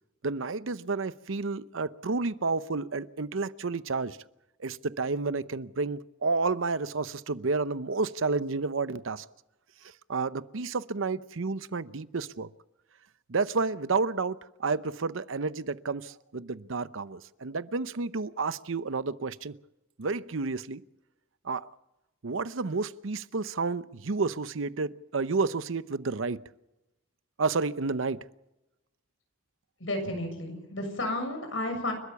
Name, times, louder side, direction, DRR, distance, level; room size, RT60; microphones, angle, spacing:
voice 1, 0.2-4.2 4.6-9.3 9.8-12.5 13.3-19.5 20.0-20.8 21.4-21.7 22.2-26.4 27.4-28.2, right 4 dB, 80° right, 15 dB, 0.8 m, -30 dB
voice 2, 29.8-31.9, left 1 dB, 75° left, 5 dB, 7.0 m, -32 dB
30.0 x 13.0 x 7.0 m, 0.96 s
head